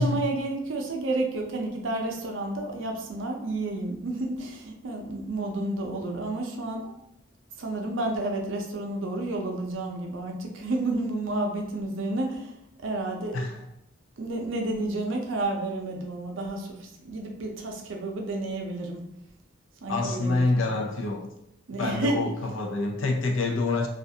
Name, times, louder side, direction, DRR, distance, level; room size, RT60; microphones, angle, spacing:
voice 1, 0.0-6.9 7.6-12.5 12.8-13.4 14.2-19.1 19.8-20.8 21.7-22.2, right 2 dB, 70° right, 2 dB, 0.5 m, -31 dB
voice 2, 19.9-21.3 21.7-23.9, left 3 dB, 75° left, 2 dB, 0.5 m, -27 dB
2.4 x 2.3 x 2.7 m, 0.81 s
head